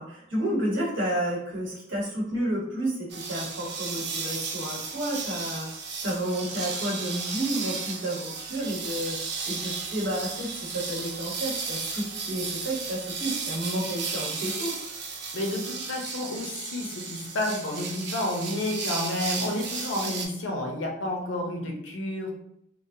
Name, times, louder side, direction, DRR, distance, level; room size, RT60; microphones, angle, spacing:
voice 1, 0.0-5.7 6.0-9.2 9.4-14.7, right 1 dB, 80° right, -4 dB, 1.2 m, -31 dB
sound 1, 3.1-20.3, right 4 dB, 60° right, 0.5 m, -34 dB
voice 2, 15.3-22.3, left 1 dB, 80° left, 1 dB, 0.6 m, -30 dB
3.0 x 2.1 x 2.6 m, 0.74 s
head